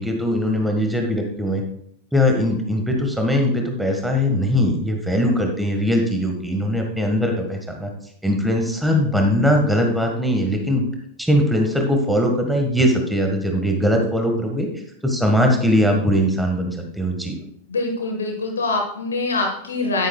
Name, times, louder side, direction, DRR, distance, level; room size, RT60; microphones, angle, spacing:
voice 1, 0.0-1.6 2.1-7.9 8.2-10.9 11.2-14.7 15.0-17.4, equal, 5° right, 2 dB, 1.6 m, -20 dB
voice 2, 17.7-20.1, left 3 dB, 70° left, 3 dB, 1.5 m, -24 dB
11.0 x 9.4 x 2.4 m, 0.67 s
figure-of-eight pair, 90°, 0 cm